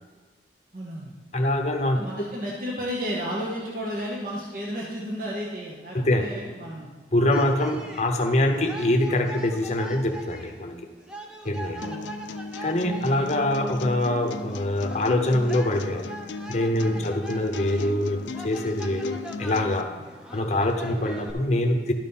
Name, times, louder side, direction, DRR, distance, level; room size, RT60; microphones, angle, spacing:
voice 1, 0.7-1.1 1.9-6.9 11.8-12.1 20.9-21.0, equal, 50° right, -4 dB, 1.1 m, -33 dB
voice 2, 1.3-2.0 5.9-6.2 7.1-10.8 11.4-11.9 12.6-16.1 16.5-20.0 20.3-21.9, left 1 dB, 40° left, 5 dB, 0.8 m, -24 dB
sound 1, 7.3-21.3, right 1 dB, 5° right, 0.6 m, -42 dB
sound 2, 11.8-19.8, left 3 dB, 90° left, 0.4 m, -37 dB
12.0 x 4.2 x 5.5 m, 1.3 s
head